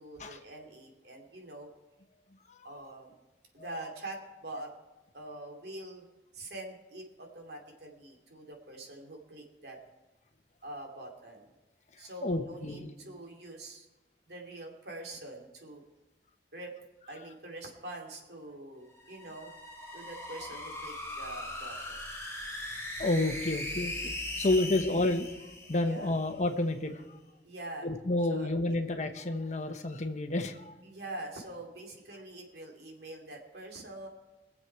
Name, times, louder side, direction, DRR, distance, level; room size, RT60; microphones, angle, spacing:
voice 1, 0.0-1.7 2.6-3.2 3.5-4.7 5.1-6.1 6.3-9.8 10.6-11.5 12.0-13.9 14.3-15.8 16.5-16.8 17.1-19.5 19.9-22.0 24.3-24.9 25.8-26.1 27.4-27.9 28.3-28.5 30.8-34.1, right 2 dB, 70° right, 1 dB, 2.5 m, -44 dB
voice 2, 2.5-2.8 12.2-12.9 23.0-27.0 27.8-30.8, left 2 dB, 40° left, 7 dB, 1.1 m, -30 dB
sound 1, 18.8-26.3, left 1 dB, 10° left, 4.3 m, -40 dB
23.0 x 7.6 x 4.6 m, 1.1 s
head